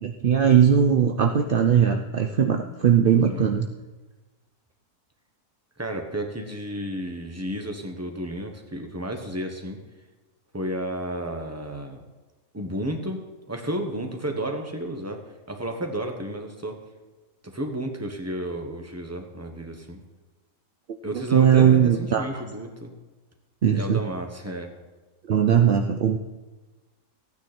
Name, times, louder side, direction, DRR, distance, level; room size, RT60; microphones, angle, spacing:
voice 1, 0.0-3.7 21.1-22.4 23.6-24.0 25.3-26.2, right 8 dB, 60° right, 5 dB, 0.6 m, -19 dB
voice 2, 5.8-9.8 10.5-12.0 12.5-13.2 13.5-16.8 17.4-20.0 21.0-22.9 23.7-24.7, right 1 dB, 10° right, 4 dB, 1.1 m, -32 dB
14.5 x 9.3 x 4.3 m, 1.2 s
omnidirectional pair, 1.7 m